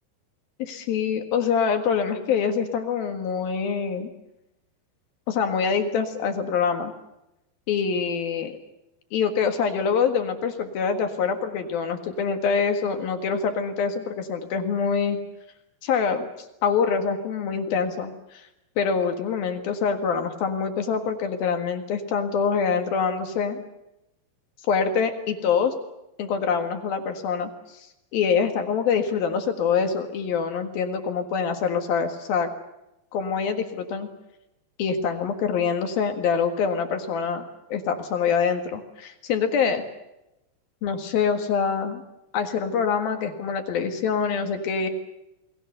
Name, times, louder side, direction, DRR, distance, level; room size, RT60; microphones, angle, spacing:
voice 1, 0.6-4.1 5.3-6.9 7.7-8.5 9.1-15.2 15.8-16.3 16.6-18.4 18.8-23.6 24.7-25.7 26.2-27.5 28.1-32.5 33.1-34.1 34.8-37.4 37.7-39.8 40.8-42.0 42.3-44.9, left 6 dB, 65° left, 6 dB, 3.3 m, -25 dB
29.5 x 21.0 x 6.8 m, 0.90 s
omnidirectional pair, 5.0 m